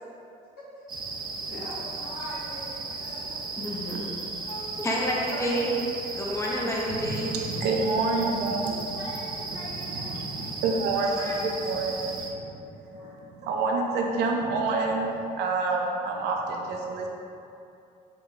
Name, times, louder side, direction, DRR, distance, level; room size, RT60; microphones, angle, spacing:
sound 1, 0.9-12.3, right 3 dB, 25° right, 0.4 m, -36 dB
voice 1, 1.1-3.4 3.9-4.0 4.5-5.0 5.3-5.6 8.9-11.3 12.9-13.2, equal, 70° left, -7 dB, 1.3 m, -42 dB
voice 2, 3.6-4.0 4.8-5.8 6.1-7.3 11.1-11.3, equal, 15° left, -3 dB, 0.6 m, -29 dB
voice 3, 6.9-9.2 9.5-17.1, right 3 dB, 85° right, 0 dB, 0.5 m, -28 dB
3.8 x 2.2 x 3.9 m, 2.6 s
cardioid pair, 110°, 17 cm